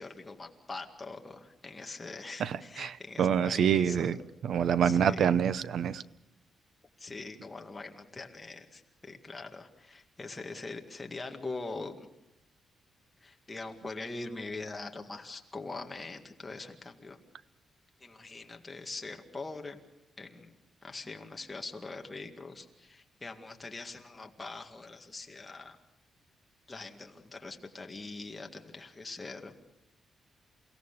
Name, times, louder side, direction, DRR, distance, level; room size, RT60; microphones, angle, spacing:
voice 1, 0.0-4.2 4.8-5.3 7.0-12.1 13.2-17.2 18.0-19.8 20.2-20.5 20.8-25.8 26.7-29.7, left 3 dB, 15° left, 3 dB, 2.0 m, -42 dB
voice 2, 2.4-4.2 4.4-6.0, right 8 dB, 65° right, 16 dB, 0.7 m, -27 dB
29.0 x 17.0 x 6.8 m, 0.84 s
wide cardioid pair, 160°, 0 cm